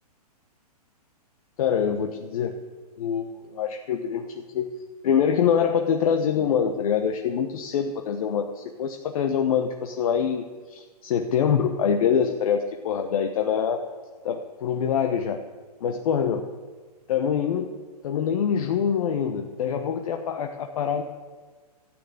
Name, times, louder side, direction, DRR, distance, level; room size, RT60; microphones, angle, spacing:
voice 1, 1.6-2.5 3.0-4.7 5.0-10.4 10.7-13.8 14.2-15.4 15.8-16.4 17.1-17.7 18.0-21.0, left 7 dB, 60° left, 5 dB, 1.1 m, -25 dB
13.0 x 8.9 x 8.1 m, 1.4 s
hypercardioid pair, 125°, 21 cm